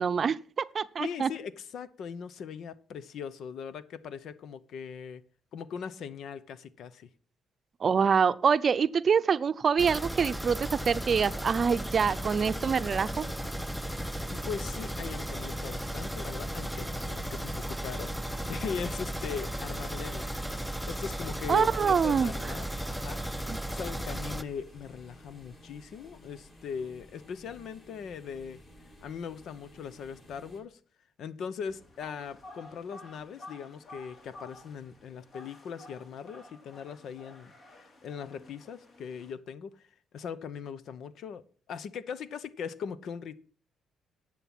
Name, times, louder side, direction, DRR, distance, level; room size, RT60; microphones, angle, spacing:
voice 1, 0.0-1.3 7.8-13.3 21.5-22.3 23.5-23.6, right 6 dB, 45° right, 0.6 m, -25 dB
voice 2, 1.0-5.2 5.5-7.1 14.3-20.4 20.8-23.2 23.6-28.6 29.0-30.8 31.2-39.9 40.1-43.4, left 7 dB, 70° left, 0.9 m, -40 dB
sound 1, 9.8-24.4, right 1 dB, ahead, 0.7 m, -35 dB
sound 2, 12.2-30.6, left 1 dB, 30° left, 6.4 m, -53 dB
sound 3, 31.7-39.3, left 2 dB, 50° left, 3.5 m, -52 dB
11.0 x 7.7 x 6.0 m
cardioid pair, 90°, 0 cm